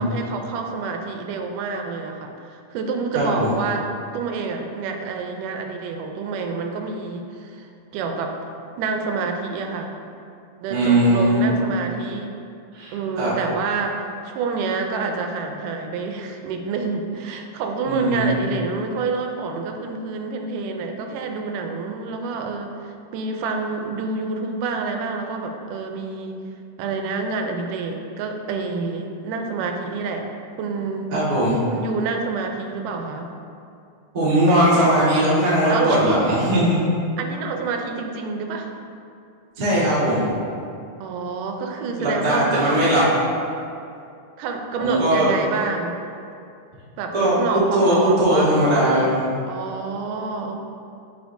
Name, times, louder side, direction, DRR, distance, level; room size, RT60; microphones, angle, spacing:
voice 1, 0.0-3.9 4.1-8.5 8.8-9.9 10.6-12.3 12.9-26.4 26.8-30.3 30.6-31.2 31.7-33.3 35.7-36.2 37.2-38.7 41.0-42.9 44.4-46.0 47.0-49.1 49.5-50.6, right 4 dB, 90° right, 4 dB, 2.2 m, -28 dB
voice 2, 3.1-3.5 10.7-11.5 12.7-13.3 17.8-18.4 31.1-31.6 34.1-36.8 39.6-40.3 41.9-43.0 44.8-45.3 47.1-49.2, right 1 dB, 70° right, -10 dB, 0.4 m, -19 dB
9.3 x 3.9 x 2.6 m, 2.5 s
omnidirectional pair, 3.6 m